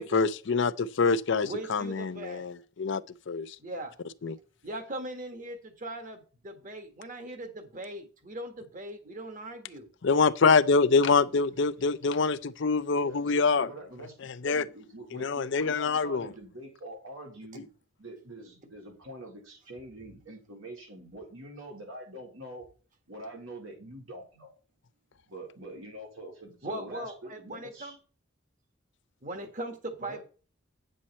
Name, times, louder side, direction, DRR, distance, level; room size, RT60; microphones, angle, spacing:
voice 1, 0.0-3.6 4.2-4.4 10.0-13.7 14.2-14.6 15.1-16.3, left 4 dB, 60° left, 0.5 m, -25 dB
voice 2, 1.4-2.5 3.6-3.9 4.6-9.9 26.6-28.0 29.2-30.2, right 1 dB, 40° right, 1.6 m, -39 dB
voice 3, 12.9-14.1 14.4-17.7 18.0-22.6 23.1-24.5 25.3-28.0 30.0-30.2, right 1 dB, 85° right, 4.0 m, -45 dB
8.8 x 7.6 x 4.2 m
head